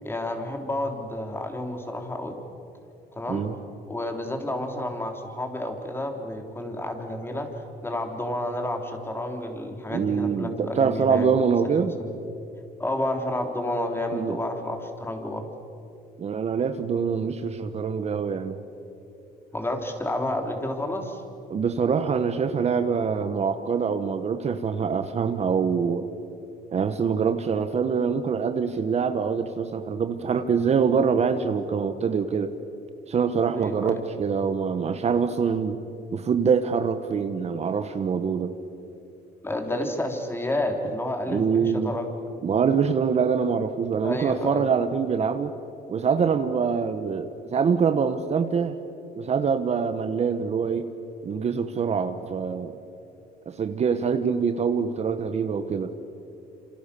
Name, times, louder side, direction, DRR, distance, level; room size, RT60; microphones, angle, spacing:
voice 1, 0.0-2.4 3.1-3.5 3.9-7.5 7.8-11.4 11.6-12.1 12.8-15.4 19.5-21.2 33.6-34.0 39.4-42.1 44.0-44.7, left 1 dB, 15° left, 4 dB, 3.5 m, -30 dB
voice 2, 9.9-11.9 14.1-14.4 16.2-18.6 21.5-26.1 26.7-32.5 33.1-35.8 36.1-38.5 41.3-42.0 42.4-45.5 45.9-48.8 49.2-50.9 51.2-52.8 53.5-55.9, right 6 dB, 40° right, 9 dB, 1.3 m, -24 dB
27.5 x 27.0 x 7.0 m, 2.7 s
cardioid pair, 110°, 17 cm